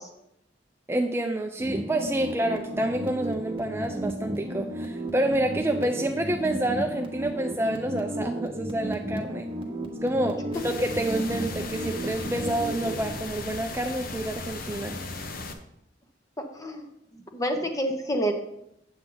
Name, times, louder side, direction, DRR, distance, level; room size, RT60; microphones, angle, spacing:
voice 1, 0.9-9.5 10.0-15.0, right 1 dB, 15° right, 4 dB, 0.5 m, -28 dB
sound 1, 1.6-13.1, right 1 dB, 30° right, 1.1 m, -34 dB
sound 2, 10.5-15.5, left 3 dB, 55° left, 0.8 m, -37 dB
voice 2, 16.5-16.9 17.3-18.3, right 1 dB, 20° left, 4 dB, 1.1 m, -27 dB
8.5 x 7.2 x 3.9 m, 0.78 s
head